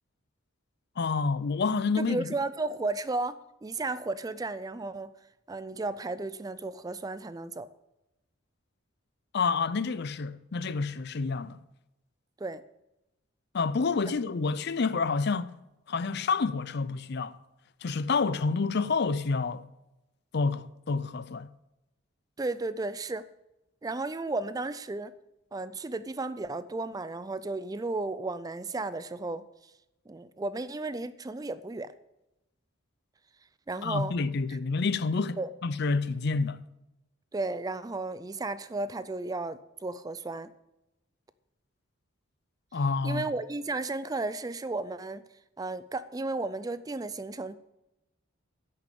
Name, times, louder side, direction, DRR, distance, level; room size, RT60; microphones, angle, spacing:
voice 1, 1.0-2.3 9.3-11.6 13.5-15.5 15.9-17.4 17.8-19.7 20.3-21.5 33.8-36.6 42.7-43.3, left 4 dB, 50° left, 0.5 m, -28 dB
voice 2, 2.0-5.1 5.5-7.7 12.4-12.6 22.4-23.3 23.8-25.1 25.5-29.7 30.1-31.9 33.7-34.2 34.5-34.6 35.4-35.5 37.3-40.5 43.0-45.2 45.6-47.6, right 2 dB, 15° right, 0.3 m, -34 dB
10.0 x 6.7 x 8.5 m
head